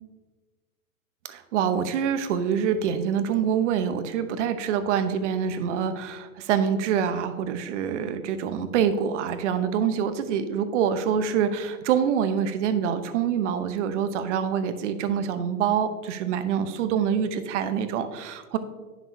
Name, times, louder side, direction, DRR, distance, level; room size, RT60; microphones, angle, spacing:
voice 1, 1.3-18.6, right 8 dB, 50° right, 10 dB, 0.9 m, -26 dB
9.2 x 6.2 x 2.7 m, 1.3 s
hypercardioid pair, 125°, 45 cm